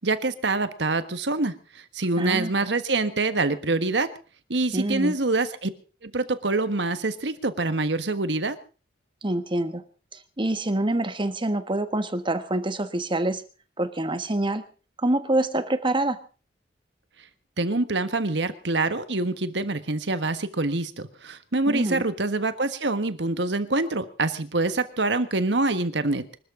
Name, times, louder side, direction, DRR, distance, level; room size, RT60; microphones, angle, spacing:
voice 1, 0.0-1.5 1.9-4.1 4.5-5.7 6.0-8.6 17.6-26.2, right 2 dB, 70° right, 11 dB, 1.5 m, -25 dB
voice 2, 2.2-2.5 4.7-5.1 9.2-9.8 10.1-13.4 13.8-14.6 15.0-16.2 21.7-22.0, right 1 dB, 25° right, 10 dB, 1.4 m, -26 dB
25.5 x 13.0 x 3.8 m, 0.36 s
head